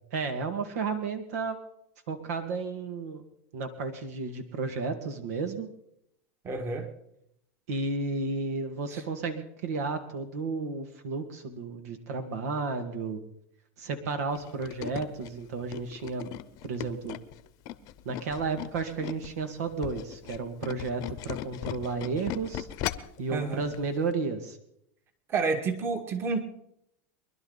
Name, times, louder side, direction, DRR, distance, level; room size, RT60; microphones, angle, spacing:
voice 1, 0.1-1.6 2.1-3.2 3.5-5.7 7.7-13.2 13.8-16.3 16.6-17.2 18.1-22.7 23.2-24.6, right 4 dB, 75° right, 7 dB, 2.1 m, -32 dB
voice 2, 6.4-6.9 8.9-9.0 23.3-23.7 25.3-26.4, right 4 dB, 30° right, 6 dB, 2.0 m, -29 dB
Tools, 14.3-19.3 19.7-23.2 23.6-23.8 24.1-24.2, left 13 dB, 50° left, 0.9 m, -38 dB
24.0 x 11.5 x 4.1 m, 0.76 s
hypercardioid pair, 115°, 8 cm